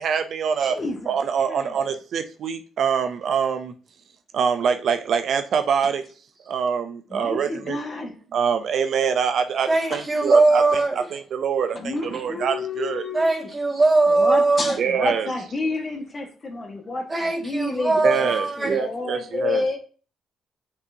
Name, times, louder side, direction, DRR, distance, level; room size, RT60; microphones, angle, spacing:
voice 1, 0.0-0.7 1.1-3.7 4.3-6.0 6.5-6.8 7.1-7.8 8.3-10.8 11.1-11.7 12.1-13.0 14.8-15.3 18.0-19.6, right 7 dB, 65° right, 0.5 m, -24 dB
voice 2, 0.6-1.8 7.1-8.1 9.9-10.0 11.7-13.2 14.1-19.8, left 3 dB, 35° left, 1.5 m, -30 dB
voice 3, 9.7-11.0 13.1-14.8 17.1-18.8, right 3 dB, 25° right, 1.9 m, -20 dB
6.8 x 5.4 x 2.7 m
cardioid pair, 90°, 0 cm